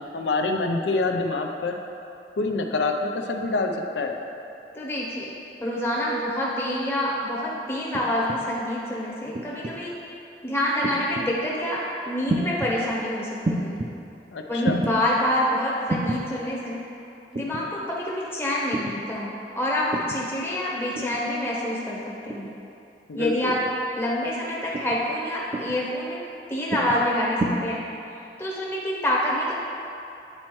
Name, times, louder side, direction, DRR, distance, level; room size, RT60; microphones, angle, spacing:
voice 1, 0.0-1.7 2.4-4.2 14.3-14.8 23.1-23.3, left 3 dB, 85° left, 4 dB, 0.5 m, -26 dB
voice 2, 4.7-5.3 5.6-9.9 10.4-13.8 14.5-16.8 17.3-22.5 23.1-23.6 23.9-26.2 26.5-27.8 28.4-29.5, left 1 dB, 15° left, -6 dB, 0.8 m, -27 dB
sound 1, 7.9-8.4 9.3-9.8 10.8-11.3 12.3-12.7 13.4-13.9 14.6-15.0 15.9-16.2 17.3-17.7 18.7-19.0 19.9-20.2 21.0-21.3 22.3-22.6 23.5-23.8 24.7-25.0 25.5-25.8 26.7-27.0 27.4-27.5, right 2 dB, 30° right, 0.4 m, -29 dB
9.0 x 4.3 x 3.0 m, 2.7 s
head